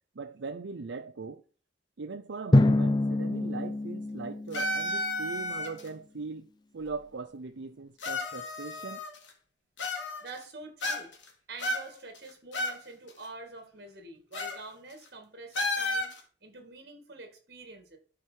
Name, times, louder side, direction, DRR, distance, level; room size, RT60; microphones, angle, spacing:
voice 1, 0.2-1.4 2.0-6.5 6.7-9.0, right 4 dB, 75° right, 0.6 m, -40 dB
Drum, 2.5-5.2, left 2 dB, 25° left, 0.4 m, -26 dB
sound 1, 4.5-5.9 6.8-6.9 8.0-9.3 9.8-10.4 10.8-11.3 11.6-12.8 13.1-13.2 14.3-14.6 14.9-15.1 15.5-16.2, left 1 dB, 75° left, 2.4 m, -32 dB
voice 2, 10.2-11.1 11.5-16.1 16.4-18.0, right 3 dB, 55° right, 2.2 m, -46 dB
11.5 x 4.7 x 4.6 m
head